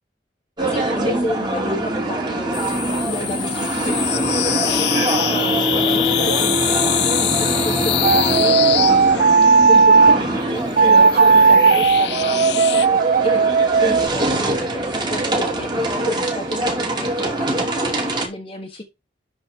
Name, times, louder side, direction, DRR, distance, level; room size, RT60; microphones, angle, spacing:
sound 1, 0.6-18.3, right 1 dB, 25° right, 2.7 m, -23 dB
voice 1, 0.7-4.9 5.3-12.7 13.2-13.5 13.8-18.8, left 1 dB, 30° left, 1.3 m, -31 dB
sound 2, 2.5-9.8 10.7-12.9, left 14 dB, 65° left, 0.6 m, -24 dB
sound 3, 8.0-10.2 10.8-14.1, right 5 dB, 50° right, 0.4 m, -14 dB
12.5 x 4.3 x 3.7 m
head